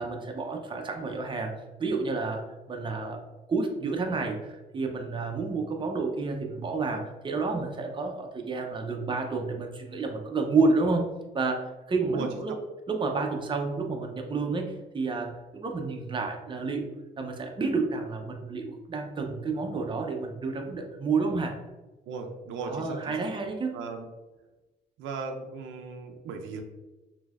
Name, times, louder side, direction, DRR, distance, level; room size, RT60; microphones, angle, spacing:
voice 1, 0.0-3.2 3.5-12.6 12.9-16.9 17.2-21.6 22.6-23.8, right 3 dB, 25° right, 2 dB, 0.6 m, -30 dB
voice 2, 22.1-23.3 23.7-24.1 25.0-26.6, right 4 dB, 85° right, 4 dB, 0.5 m, -37 dB
3.8 x 2.7 x 2.4 m, 1.1 s
cardioid pair, 90°, 20 cm